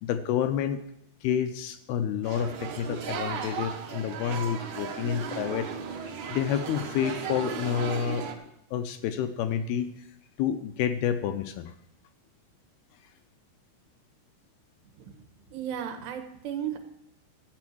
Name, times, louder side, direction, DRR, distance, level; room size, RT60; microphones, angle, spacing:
voice 1, 0.0-0.8 1.2-5.7 6.0-8.3 8.7-10.1 10.4-11.7, left 9 dB, 80° left, 9 dB, 2.4 m, -29 dB
sound 1, 2.2-8.3, right 6 dB, 65° right, 2.0 m, -36 dB
voice 2, 15.5-16.8, right 9 dB, 90° right, 6 dB, 3.5 m, -35 dB
13.5 x 8.8 x 6.2 m, 0.79 s
omnidirectional pair, 4.8 m